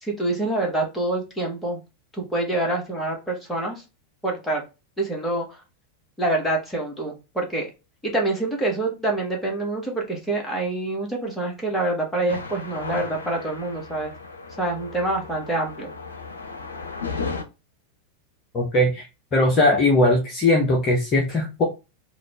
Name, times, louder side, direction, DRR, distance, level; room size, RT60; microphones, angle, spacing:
voice 1, 0.0-1.8 2.1-3.8 4.2-4.6 5.0-5.6 6.2-7.7 8.0-14.1 14.6-15.9, right 2 dB, 5° left, -1 dB, 1.6 m, -26 dB
sound 1, 12.3-17.4, left 4 dB, 70° left, 0.7 m, -35 dB
voice 2, 18.5-19.1 19.3-21.6, left 1 dB, 30° left, 0 dB, 1.0 m, -19 dB
4.1 x 2.6 x 3.4 m, 0.27 s
figure-of-eight pair, 90°, 0 cm